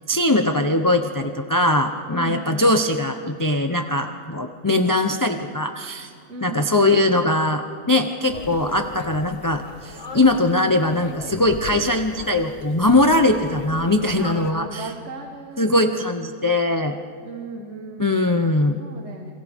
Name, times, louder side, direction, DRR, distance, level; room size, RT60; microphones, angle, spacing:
voice 1, 0.0-6.1 6.4-14.9 15.6-17.0 18.0-18.8, left 2 dB, 20° left, 5 dB, 0.7 m, -21 dB
voice 2, 2.1-2.8 6.3-6.7 14.2-16.1 17.2-18.3 18.8-19.3, right 2 dB, 55° right, 1 dB, 1.8 m, -36 dB
sound 1, 8.3-14.5, left 4 dB, 60° left, 1.5 m, -38 dB
29.5 x 27.5 x 3.6 m, 2.2 s
omnidirectional pair, 1.4 m